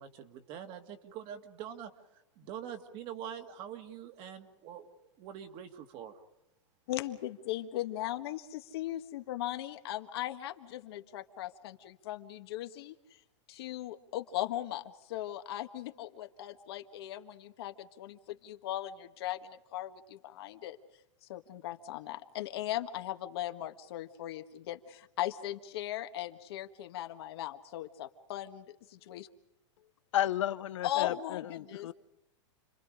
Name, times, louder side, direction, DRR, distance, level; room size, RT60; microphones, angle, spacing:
voice 1, 0.0-6.2, right 9 dB, 35° right, 6 dB, 2.1 m, -45 dB
voice 2, 6.9-13.0 13.5-20.8 21.2-29.3 30.8-31.9, left 13 dB, 55° left, 7 dB, 1.7 m, -38 dB
voice 3, 30.1-31.9, left 12 dB, 75° left, 14 dB, 0.8 m, -33 dB
29.5 x 22.5 x 5.1 m, 0.91 s
supercardioid pair, 160°, 16 cm